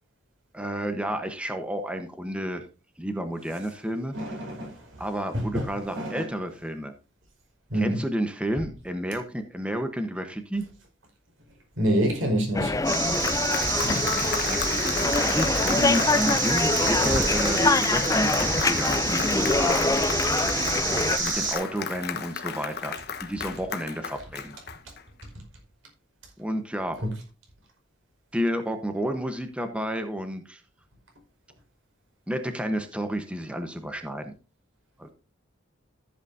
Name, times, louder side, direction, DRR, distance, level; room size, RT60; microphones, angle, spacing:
voice 1, 0.5-2.6 3.0-4.1 5.0-6.9 7.7-10.6 14.5-14.6 15.2-19.9 21.1-24.5 26.4-27.0 28.3-30.6 32.3-34.3 35.0-35.1, equal, 5° right, 1.1 m, -31 dB
voice 2, 4.1-4.8 5.3-5.7 6.0-6.3 7.7-8.0 11.8-12.7 13.6-14.2 17.0-17.1 17.6-17.8, right 1 dB, 85° right, 5.2 m, -27 dB
sound 1, 12.5-21.2, left 3 dB, 15° left, 0.5 m, -25 dB
Applause, 12.7-25.2, left 6 dB, 55° left, 1.2 m, -34 dB
sound 2, 12.8-21.5, right 4 dB, 45° right, 5.7 m, -28 dB
14.5 x 8.2 x 2.7 m
head